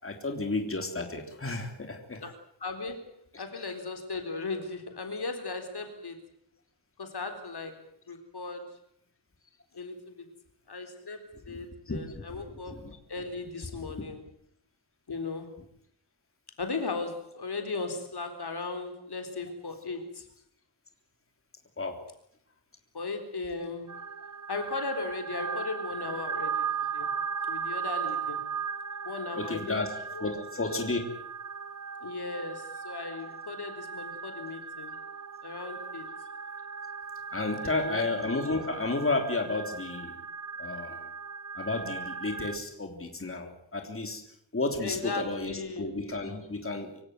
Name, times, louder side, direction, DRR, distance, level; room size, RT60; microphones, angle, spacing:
voice 1, 0.0-2.2 3.3-3.4 11.5-11.6 11.9-13.0 14.0-14.1 21.8-22.0 29.4-29.9 30.2-31.1 37.3-40.2 40.6-41.1 41.5-44.2 44.5-47.0, left 3 dB, 30° left, 4 dB, 3.4 m, -32 dB
voice 2, 2.6-3.0 3.4-6.2 7.0-8.8 9.7-10.3 10.7-12.8 13.1-14.2 15.1-15.6 16.6-20.3 22.9-24.0 24.5-26.7 26.9-27.1 27.5-28.4 29.0-29.8 30.1-30.4 32.0-35.0 35.4-36.1 37.6-38.0 44.8-45.9, left 3 dB, 65° left, 6 dB, 4.0 m, -37 dB
sound 1, 23.9-42.6, right 6 dB, 45° right, 1.4 m, -37 dB
25.5 x 16.5 x 9.3 m, 0.68 s
wide cardioid pair, 120°, 42 cm